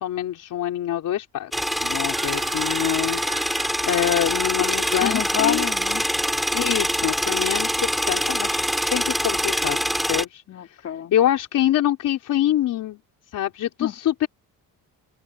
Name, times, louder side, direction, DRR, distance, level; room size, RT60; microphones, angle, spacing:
voice 1, 0.0-5.7 6.5-8.6 8.9-10.4 11.1-13.0 13.3-14.3, left 12 dB, 60° left, 3.7 m, -25 dB
sound 1, 1.5-10.2, equal, ahead, 2.8 m, -24 dB
sound 2, 2.2-6.6, right 11 dB, 60° right, 4.4 m, -41 dB
voice 2, 5.0-6.0 10.5-11.1 13.8-13.9, left 9 dB, 45° left, 2.8 m, -27 dB
open air
cardioid pair, 160°, 36 cm